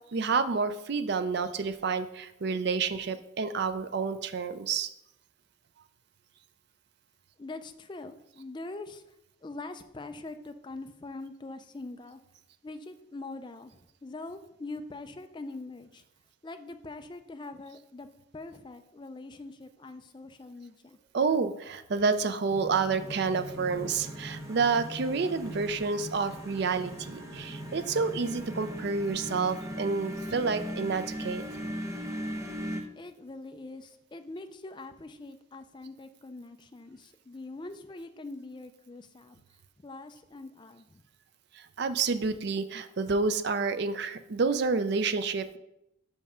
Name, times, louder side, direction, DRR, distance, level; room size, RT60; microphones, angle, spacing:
voice 1, 0.0-4.9 21.1-31.4 41.6-45.6, right 4 dB, 50° right, 11 dB, 0.4 m, -29 dB
voice 2, 7.4-9.0 9.4-12.2 12.6-16.0 16.4-18.1 18.3-21.0 31.5-31.8 33.0-39.4 39.8-41.0, left 2 dB, 20° left, 8 dB, 0.4 m, -43 dB
sound 1, 22.5-32.8, equal, 15° right, 0.8 m, -39 dB
5.6 x 5.4 x 4.9 m, 0.84 s
head